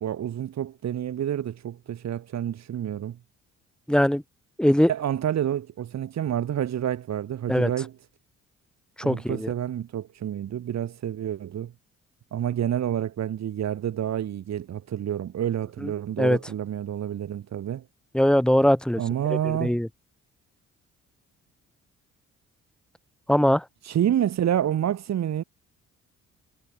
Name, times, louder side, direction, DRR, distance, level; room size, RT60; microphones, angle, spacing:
voice 1, 0.0-3.2 4.9-7.9 9.0-11.7 12.3-17.8 19.0-19.8 23.8-25.4, right 10 dB, 60° right, 2.3 m, -28 dB
voice 2, 3.9-4.2 4.6-4.9 7.5-7.7 9.0-9.5 15.8-15.9 16.2-16.4 18.1-19.0 19.4-19.9 23.3-23.6, equal, 5° left, 2.8 m, -21 dB
cardioid pair, 90°, 30 cm